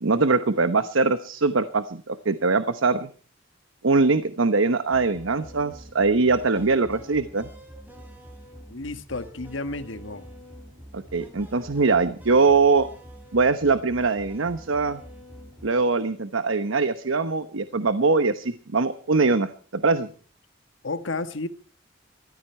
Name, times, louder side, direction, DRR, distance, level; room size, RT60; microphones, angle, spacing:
voice 1, 0.0-3.1 3.8-7.5 10.9-12.9 13.3-15.0 15.6-20.1, right 4 dB, 85° right, 11 dB, 1.0 m, -22 dB
sound 1, 4.9-15.7, equal, 10° right, 5.1 m, -45 dB
voice 2, 8.7-10.2 20.8-21.5, left 2 dB, 75° left, 10 dB, 1.4 m, -32 dB
22.0 x 14.5 x 4.4 m, 0.42 s
head